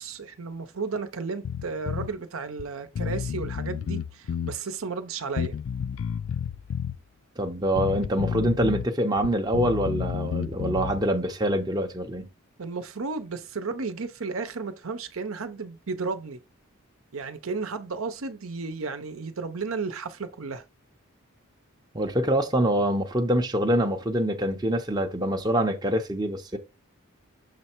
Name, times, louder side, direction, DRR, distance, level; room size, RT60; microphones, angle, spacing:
voice 1, 0.0-5.6 12.6-16.4 17.1-20.6, right 4 dB, 75° right, 0.8 m, -33 dB
Bass guitar, 1.4-2.1 2.6-2.7 3.0-4.6 5.4-7.0 7.8-8.9 9.2-11.0, left 7 dB, 65° left, 0.3 m, -30 dB
voice 2, 7.4-12.3 21.9-26.6, right 1 dB, 20° right, 0.6 m, -25 dB
6.7 x 3.2 x 4.5 m
head